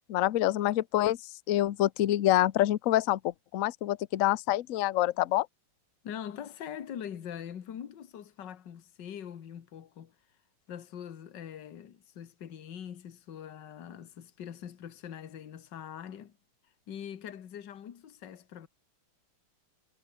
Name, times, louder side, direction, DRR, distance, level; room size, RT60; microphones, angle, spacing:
voice 1, 0.1-1.2 1.5-5.5, left 14 dB, 75° left, 0.7 m, -26 dB
voice 2, 6.0-10.1 10.7-16.4 16.9-18.7, left 9 dB, 55° left, 2.0 m, -43 dB
omnidirectional pair, 2.4 m